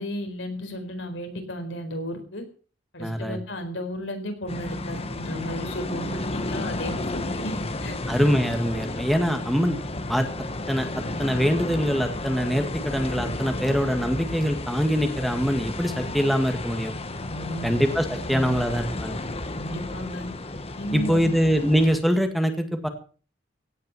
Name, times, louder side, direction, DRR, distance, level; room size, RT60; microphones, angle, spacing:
voice 1, 0.0-2.4 2.9-8.0 17.3-17.8 18.3-18.5 19.5-20.3 20.7-21.3, equal, 80° left, 6 dB, 4.5 m, -33 dB
voice 2, 3.0-3.4 8.1-9.8 10.1-10.3 10.7-10.9 11.2-16.9 17.6-19.2 20.9-22.9, equal, ahead, 6 dB, 1.8 m, -23 dB
sound 1, 4.5-22.0, left 2 dB, 35° left, 1.4 m, -32 dB
17.0 x 9.3 x 7.1 m, 0.41 s
head